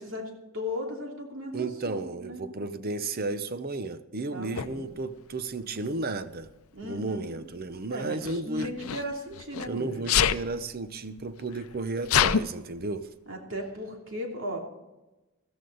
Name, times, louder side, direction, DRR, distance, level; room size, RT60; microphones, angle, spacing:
voice 1, 0.0-2.4 4.3-4.9 6.7-7.3 7.9-10.1 13.3-14.6, left 1 dB, 65° right, 2.9 m, -37 dB
voice 2, 1.5-6.5 6.8-8.7 9.7-13.1, right 3 dB, 45° right, 0.7 m, -33 dB
Sneeze, 4.5-4.7 5.8-6.2 8.2-9.7 10.0-10.4 11.2-11.3 11.5-12.4, left 8 dB, 90° left, 0.6 m, -25 dB
14.5 x 14.0 x 4.0 m
head